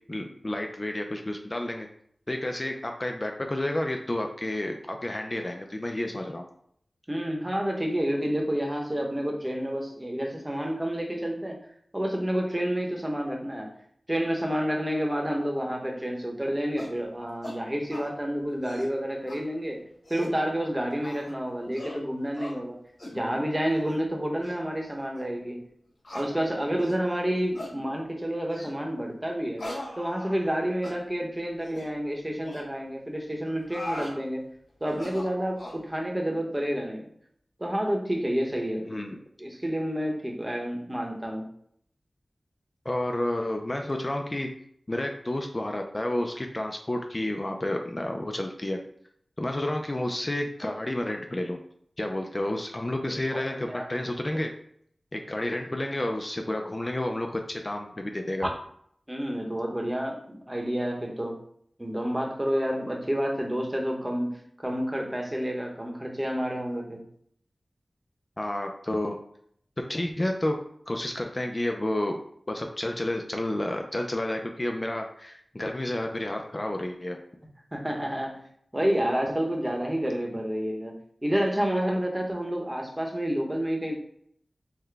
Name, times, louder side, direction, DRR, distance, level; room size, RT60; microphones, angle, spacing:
voice 1, 0.1-1.9 2.3-6.4 38.9-39.2 42.9-44.5 44.9-48.8 49.4-51.6 52.0-54.5 55.1-58.5 68.4-69.2 69.8-72.2 72.5-77.2, left 1 dB, 30° left, 3 dB, 0.4 m, -30 dB
voice 2, 7.1-11.6 11.9-13.7 14.1-19.8 20.1-22.8 23.1-25.6 26.1-29.6 30.0-34.5 34.8-37.1 37.6-38.9 39.4-41.4 53.1-53.9 59.1-61.4 61.8-67.0 77.7-78.4 78.7-80.9 81.2-83.9, equal, 20° right, 0 dB, 0.9 m, -29 dB
sound 1, 16.8-17.0 17.4-17.6 17.9-18.1 18.5-18.9 19.3-19.4 19.9-20.4 21.0-21.3 21.7-22.0 22.3-22.5 23.0-23.2 23.7-24.0 24.4-24.5 25.1-25.2 26.0-26.3 26.8-27.0 27.5-27.7 28.5-28.8 29.6-30.5 30.8-31.0 31.6-31.9 32.4-32.6 33.4-34.1 34.9-35.8, left 1 dB, 75° left, 1.6 m, -39 dB
5.7 x 2.1 x 3.4 m, 0.66 s
wide cardioid pair, 75°, 0 cm